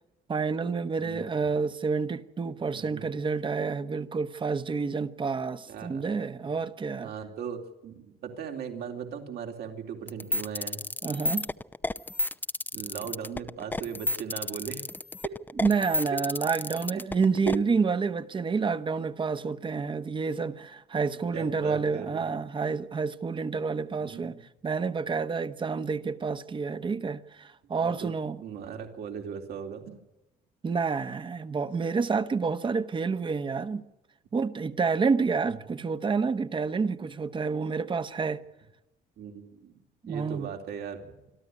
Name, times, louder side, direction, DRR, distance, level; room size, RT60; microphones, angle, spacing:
voice 1, 0.3-7.1 11.0-11.5 15.6-24.4 24.6-28.4 30.6-33.8 34.3-38.4 40.0-40.5, right 5 dB, 30° right, 1.2 m, -29 dB
voice 2, 2.7-3.0 5.7-6.1 7.0-10.8 12.7-14.8 15.2-15.4 16.5-16.6 17.5-17.6 21.3-22.4 24.0-24.4 27.7-28.1 28.4-30.0 35.7-35.8 37.0-37.1 39.2-39.8 40.1-41.1, right 7 dB, 70° right, 3.8 m, -38 dB
sound 1, 10.1-17.6, left 2 dB, 10° left, 0.7 m, -31 dB
26.5 x 13.0 x 9.7 m
cardioid pair, 110°, 17 cm